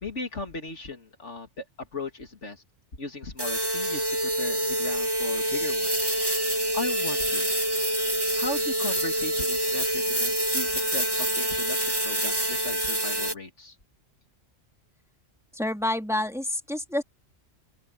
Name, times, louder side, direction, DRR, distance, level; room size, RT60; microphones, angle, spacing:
voice 1, 0.0-2.6 3.0-6.1 6.7-7.5 8.3-13.8, left 3 dB, 70° left, 2.9 m, -37 dB
sound 1, 3.4-13.3, right 1 dB, 20° right, 2.1 m, -26 dB
voice 2, 15.5-17.0, left 1 dB, ahead, 2.7 m, -28 dB
open air
omnidirectional pair, 1.3 m